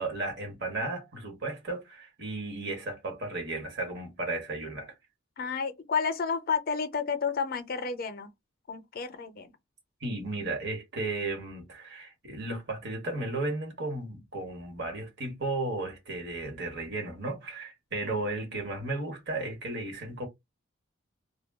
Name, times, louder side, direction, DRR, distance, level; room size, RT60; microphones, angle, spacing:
voice 1, 0.0-4.9 10.0-20.3, right 2 dB, 55° right, 1.1 m, -34 dB
voice 2, 5.4-8.3 8.7-9.5, left 5 dB, 50° left, 0.5 m, -31 dB
2.2 x 2.2 x 3.5 m
head